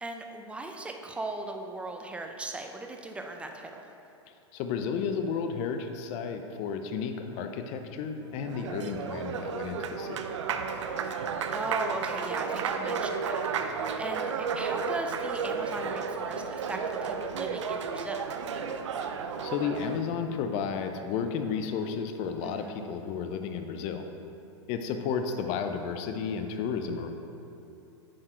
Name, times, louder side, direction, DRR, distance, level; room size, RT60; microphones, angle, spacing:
voice 1, 0.0-3.9 11.0-18.2 22.4-22.8, right 2 dB, 5° right, 3 dB, 0.5 m, -38 dB
voice 2, 4.5-10.3 19.0-19.2 19.4-24.1 24.7-27.1, left 6 dB, 40° left, 6 dB, 0.6 m, -32 dB
Applause, 8.2-20.1, right 5 dB, 80° right, 0.5 m, -33 dB
7.4 x 4.5 x 4.5 m, 2.8 s
hypercardioid pair, 120°, 15 cm